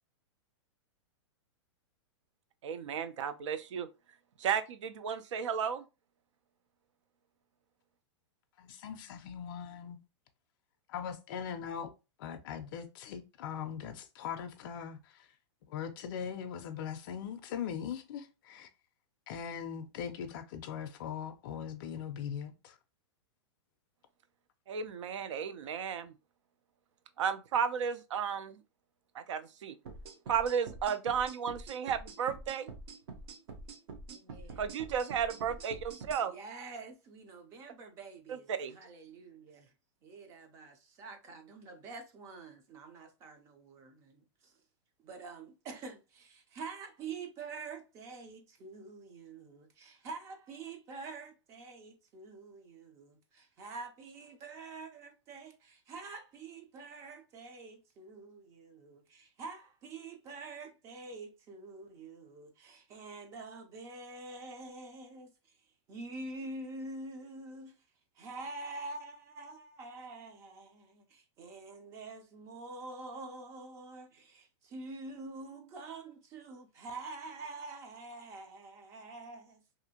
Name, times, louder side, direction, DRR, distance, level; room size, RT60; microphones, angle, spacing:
voice 1, 2.6-3.9 4.4-5.8 24.7-26.1 27.2-28.6 29.1-29.8 30.3-32.7 34.6-36.3 38.3-38.8, right 7 dB, 75° right, 0.4 m, -33 dB
voice 2, 8.6-10.0 10.9-11.9 12.2-15.3 15.7-18.7 19.3-22.8, left 8 dB, 45° left, 0.4 m, -40 dB
sound 1, 29.9-36.2, right 3 dB, 55° right, 0.7 m, -46 dB
voice 3, 34.1-34.7 36.2-39.7 40.0-44.5 45.0-65.3 65.9-67.8 68.2-79.6, right 3 dB, 20° right, 0.4 m, -46 dB
2.6 x 2.4 x 2.8 m
supercardioid pair, 160°, 16 cm